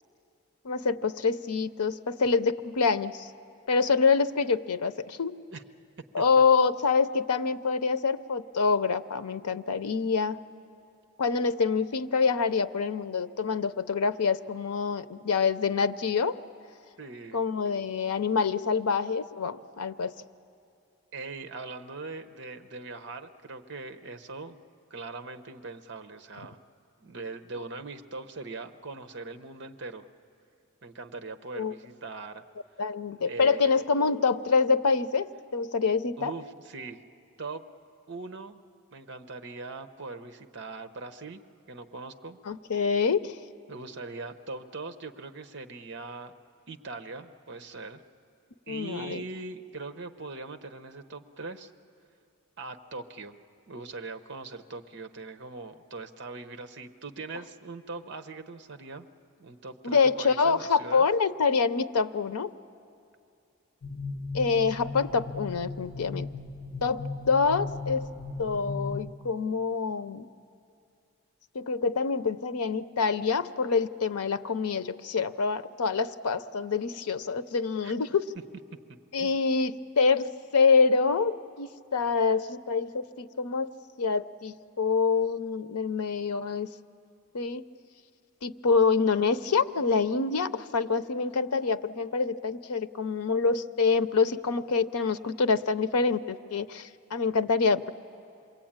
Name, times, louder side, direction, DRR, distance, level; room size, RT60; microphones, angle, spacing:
voice 1, 0.6-3.3 3.7-5.4 6.1-10.4 11.2-16.4 17.3-20.1 31.6-31.7 32.8-36.3 42.5-43.3 48.7-49.2 59.8-62.5 64.3-66.3 66.8-68.1 68.4-70.3 71.5-78.3 79.1-83.7 84.0-86.7 87.3-87.6 88.4-97.9, left 5 dB, 90° left, 12 dB, 0.7 m, -26 dB
voice 2, 17.0-17.4 21.1-24.6 24.9-26.6 27.0-30.1 30.8-32.4 33.1-33.8 36.2-37.0 37.4-37.6 38.1-38.6 38.9-41.4 41.7-42.4 43.7-46.3 46.7-48.0 48.7-51.7 52.6-53.3 53.7-59.1 59.4-61.1 77.8-77.9 79.2-79.3, right 3 dB, 50° right, 7 dB, 0.9 m, -41 dB
sound 1, 63.8-69.1, left 3 dB, 55° left, 1.1 m, -37 dB
27.5 x 22.0 x 8.9 m, 2.6 s
head